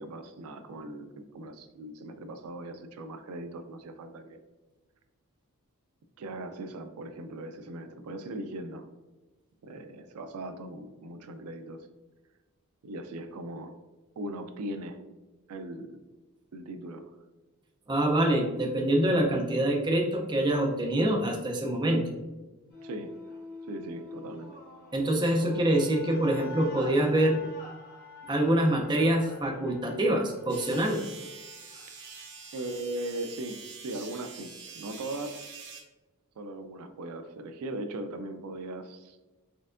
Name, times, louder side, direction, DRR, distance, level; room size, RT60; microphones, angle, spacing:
voice 1, 0.0-4.4 6.2-8.9 9.6-11.9 12.8-13.8 14.2-15.0 15.5-16.0 16.5-17.0 22.8-23.1 23.7-24.6 32.5-35.4 36.4-39.2, right 1 dB, 75° right, 8 dB, 0.4 m, -39 dB
voice 2, 17.9-22.1 24.9-27.4 28.3-31.1, right 1 dB, 20° right, 1 dB, 0.5 m, -25 dB
sound 1, 22.7-33.1, left 3 dB, 50° left, 1.3 m, -47 dB
sound 2, 30.5-35.8, right 5 dB, 55° right, 0.8 m, -46 dB
4.3 x 3.4 x 2.5 m, 1.1 s
head